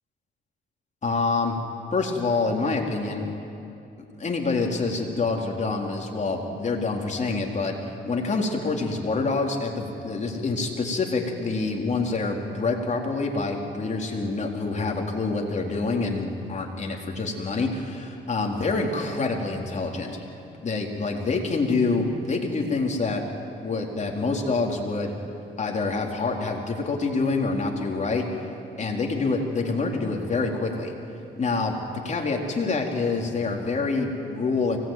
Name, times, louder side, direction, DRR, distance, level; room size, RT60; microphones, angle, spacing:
voice 1, 1.0-1.6 1.9-3.2 4.2-7.8 8.1-20.2 20.6-23.2 23.6-25.1 25.6-28.4 28.8-30.9 31.4-31.8 32.0-34.8, left 3 dB, 35° left, 1 dB, 4.1 m, -26 dB
24.0 x 19.0 x 9.3 m, 2.7 s
cardioid pair, 90°, 20 cm